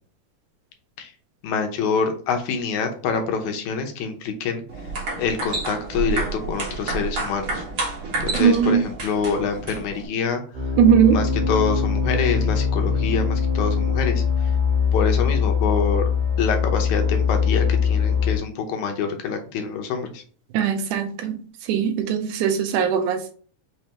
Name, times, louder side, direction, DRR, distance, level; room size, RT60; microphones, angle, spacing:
voice 1, 1.4-4.6 5.2-7.6 8.2-10.4 11.1-14.5 14.9-16.1 16.4-20.2, left 5 dB, 75° left, 5 dB, 2.2 m, -26 dB
sound 1, 4.7-10.1, right 3 dB, 55° right, 1.8 m, -29 dB
voice 2, 8.4-8.8 10.8-11.2 20.5-21.4 21.7-23.3, right 7 dB, 85° right, 6 dB, 2.2 m, -19 dB
sound 2, 10.5-18.4, left 6 dB, 70° right, 2.9 m, -22 dB
5.5 x 3.3 x 2.9 m, 0.43 s
omnidirectional pair, 3.4 m